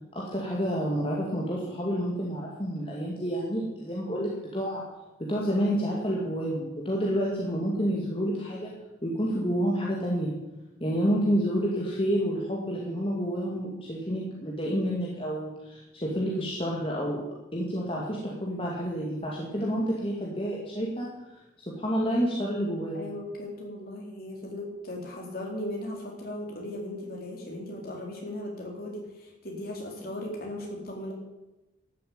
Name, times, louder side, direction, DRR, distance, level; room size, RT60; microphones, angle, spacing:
voice 1, 0.1-4.8 5.2-8.7 9.0-10.3 10.8-17.2 17.5-21.4 21.7-23.0, equal, 30° left, -4 dB, 2.2 m, -29 dB
voice 2, 22.9-31.1, left 1 dB, 50° left, -1 dB, 4.0 m, -37 dB
13.0 x 7.8 x 8.8 m, 1.0 s
head